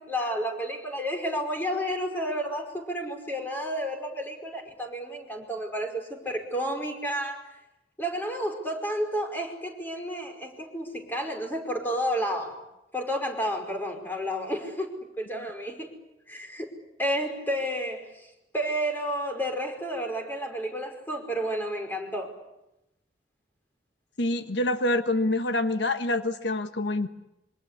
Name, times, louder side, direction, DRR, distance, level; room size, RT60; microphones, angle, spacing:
voice 1, 0.0-7.5 8.0-12.6 12.9-15.9 16.3-16.7 17.0-22.3, equal, 10° left, 3 dB, 5.2 m, -31 dB
voice 2, 24.2-27.1, left 2 dB, 90° left, 8 dB, 1.4 m, -26 dB
27.0 x 24.5 x 8.4 m, 0.88 s
head